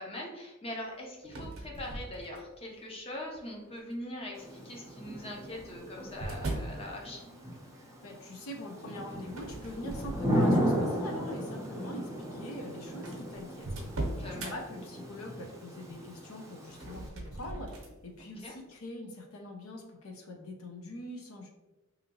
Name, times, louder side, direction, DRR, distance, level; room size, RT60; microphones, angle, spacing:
voice 1, 0.0-7.5 14.2-14.6 18.4-18.5, left 1 dB, 30° left, -1 dB, 0.6 m, -42 dB
sound 1, 1.2-2.7 3.3-3.8 4.9-6.8 9.3-10.8 11.3-11.5 12.3-12.4 12.6-12.7 13.0-14.5 16.7-18.0, right 2 dB, 75° right, 0.7 m, -39 dB
Thunder / Rain, 4.3-17.1, equal, 15° right, 0.5 m, -35 dB
voice 2, 8.0-13.7 14.2-17.7 18.0-21.5, left 1 dB, 80° left, 2 dB, 0.6 m, -43 dB
2.7 x 2.6 x 2.7 m, 1.1 s
head